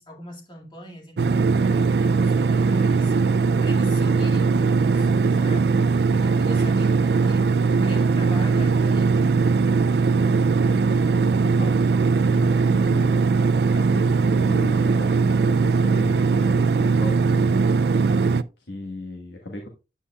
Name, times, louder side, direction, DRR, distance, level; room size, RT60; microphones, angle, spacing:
voice 1, 0.0-9.5, equal, 25° left, 2.2 m, -42 dB
sound 1, 1.2-18.4, right 4 dB, 60° right, 0.4 m, -20 dB
voice 2, 11.4-11.8 12.2-13.3 13.7-17.8 18.1-18.2 18.6-19.7, left 1 dB, 70° left, 1.5 m, -36 dB
9.7 x 8.3 x 2.4 m
head